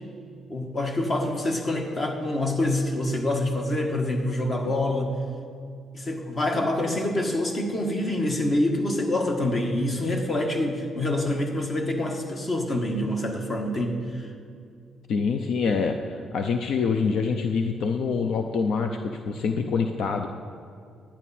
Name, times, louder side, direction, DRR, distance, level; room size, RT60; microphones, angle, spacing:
voice 1, 0.5-5.1 5.9-14.3, left 1 dB, 40° left, 3 dB, 1.5 m, -26 dB
voice 2, 15.1-20.3, left 5 dB, 70° left, 6 dB, 0.5 m, -25 dB
11.0 x 9.9 x 4.3 m, 2.3 s
cardioid pair, 90°, 0 cm